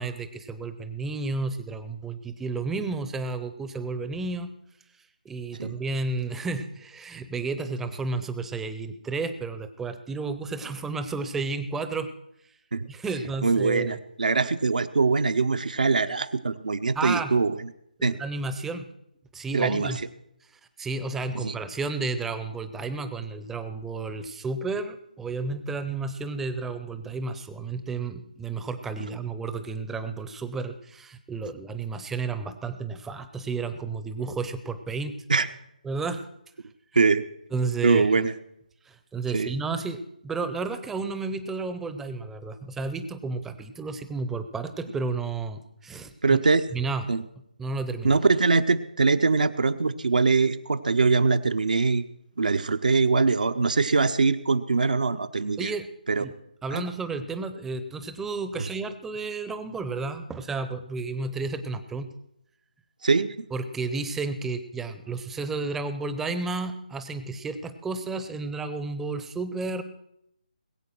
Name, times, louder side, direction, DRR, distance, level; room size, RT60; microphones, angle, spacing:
voice 1, 0.0-4.5 5.2-12.1 12.9-14.0 16.9-17.3 18.0-18.9 19.3-20.0 20.8-35.1 35.8-36.3 37.5-38.3 38.9-46.4 46.7-47.1 47.6-48.2 55.6-55.9 56.2-56.3 56.6-62.1 63.5-69.8, right 3 dB, 5° right, 11 dB, 0.8 m, -32 dB
voice 2, 13.4-17.6 18.0-18.2 19.5-20.0 21.3-21.5 35.3-35.5 36.9-37.2 37.8-38.3 39.3-39.5 46.2-46.6 47.1-47.2 48.0-52.1 52.4-55.7 56.1-56.2 56.7-56.8 58.6-58.7 63.0-63.3, right 4 dB, 65° right, 8 dB, 0.9 m, -23 dB
20.5 x 8.4 x 6.2 m, 0.77 s
figure-of-eight pair, 150°, 5 cm